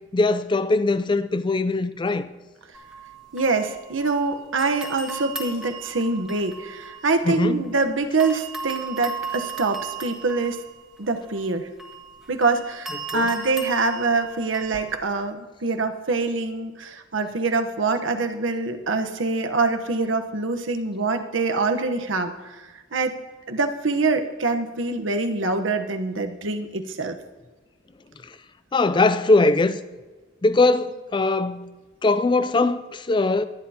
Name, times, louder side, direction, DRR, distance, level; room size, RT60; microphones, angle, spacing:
voice 1, 0.1-2.3 7.2-7.6 13.1-13.3 28.7-29.8 30.4-31.7 32.0-33.4, left 3 dB, 25° left, 0.4 m, -21 dB
sound 1, 2.7-4.2 4.6-7.8 8.2-15.0, right 4 dB, 5° right, 1.8 m, -37 dB
voice 2, 3.3-10.6 11.0-11.7 12.3-22.3 22.9-23.1 23.5-27.2, right 3 dB, 90° right, 1.1 m, -25 dB
23.5 x 10.0 x 2.9 m
head